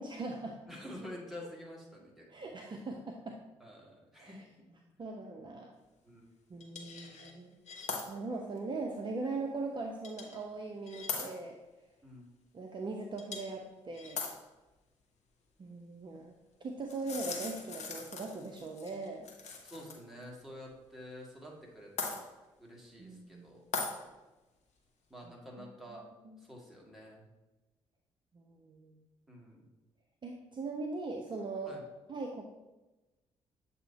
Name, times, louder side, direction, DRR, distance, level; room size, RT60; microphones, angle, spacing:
voice 1, 0.0-0.6 2.3-3.4 4.2-4.5 5.0-5.7 6.5-7.5 8.1-11.6 12.5-14.2 15.6-16.3 16.6-19.3 23.0-23.5 25.2-25.3 25.6-26.4 28.3-29.0 30.2-31.8 32.1-32.5, right 3 dB, 30° right, 2 dB, 0.6 m, -40 dB
voice 2, 0.7-2.3 3.6-4.4 6.0-6.3 12.0-12.3 19.6-22.3 22.6-23.6 25.1-26.0 26.5-27.2 29.3-29.7 31.7-31.8, equal, ahead, -3 dB, 1.9 m, -48 dB
sound 1, 6.6-7.3 7.7-8.0 8.6-8.7 10.0-10.4 10.9-11.3 13.2-13.6 13.9-14.3 16.9-19.9 20.2-20.3 22.0-22.2 23.7-23.9, left 4 dB, 50° left, 1.1 m, -39 dB
7.4 x 2.8 x 4.6 m, 1.1 s
figure-of-eight pair, 40°, 15 cm